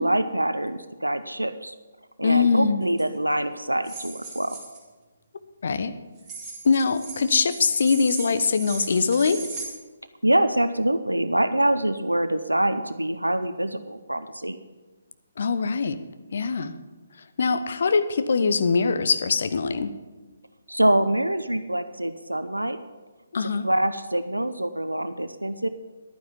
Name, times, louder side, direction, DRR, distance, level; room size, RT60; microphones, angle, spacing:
voice 1, 0.0-1.7 2.2-4.6 10.2-14.6 20.7-22.8 23.4-25.7, right 1 dB, 80° right, 11 dB, 0.7 m, -25 dB
voice 2, 2.2-2.8 5.6-5.9 6.6-9.4 15.4-16.0 16.3-16.7 17.4-19.9 23.3-23.7, left 5 dB, 50° left, 11 dB, 0.9 m, -22 dB
sound 1, 2.9-3.0 3.8-4.8 6.2-9.7, right 4 dB, 10° right, 3.4 m, -38 dB
11.5 x 9.4 x 7.1 m, 1.3 s
figure-of-eight pair, 140°, 0 cm